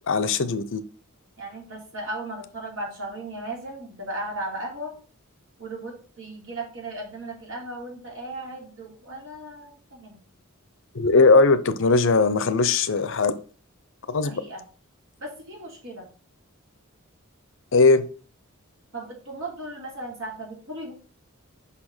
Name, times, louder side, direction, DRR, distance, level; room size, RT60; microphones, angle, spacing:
voice 1, 0.1-0.8 10.9-13.3 14.1-14.4 17.7-18.0, left 3 dB, 60° left, 0.7 m, -19 dB
voice 2, 1.4-4.9 5.6-10.2 14.2-14.6 15.2-16.1 18.9-20.9, right 1 dB, 65° right, 3.1 m, -36 dB
5.7 x 4.2 x 6.1 m
head